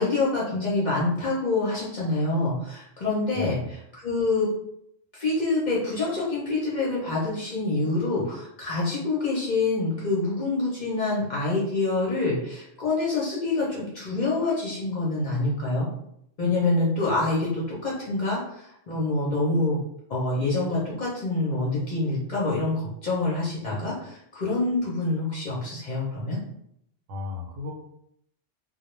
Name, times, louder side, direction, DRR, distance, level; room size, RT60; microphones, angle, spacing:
voice 1, 0.0-3.6 3.9-4.5 5.1-15.9 16.4-19.8 20.1-26.4, left 2 dB, 50° left, -5 dB, 0.6 m, -26 dB
voice 2, 3.3-3.7 27.1-27.7, left 4 dB, 90° right, 1 dB, 1.0 m, -34 dB
2.2 x 2.0 x 3.0 m, 0.73 s
omnidirectional pair, 1.3 m